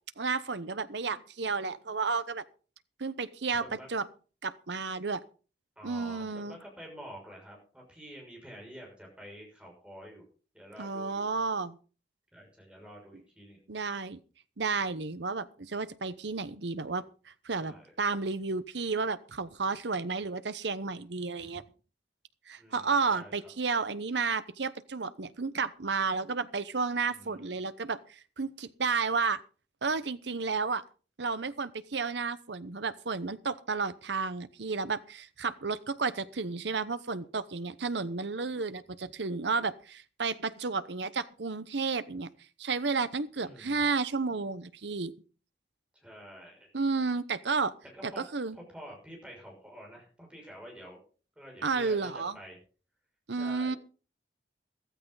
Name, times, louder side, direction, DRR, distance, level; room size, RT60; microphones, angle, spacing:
voice 1, 0.2-2.4 3.0-4.1 4.4-5.2 5.8-6.6 10.8-11.8 13.7-14.2 14.6-17.0 17.4-21.6 22.5-29.4 29.8-30.8 31.2-42.3 42.6-45.1 46.7-47.7 48.0-48.6 51.6-52.4 53.3-53.8, right 4 dB, 70° right, 14 dB, 0.9 m, -32 dB
voice 2, 3.6-3.9 5.8-10.2 10.5-11.3 12.3-13.6 17.5-17.9 21.4-21.5 22.6-23.5 27.1-27.7 43.4-43.8 45.9-46.7 47.9-48.2 48.5-51.0 51.4-52.6 53.3-53.8, equal, 5° right, -1 dB, 6.3 m, -49 dB
15.0 x 13.5 x 4.0 m, 0.38 s
head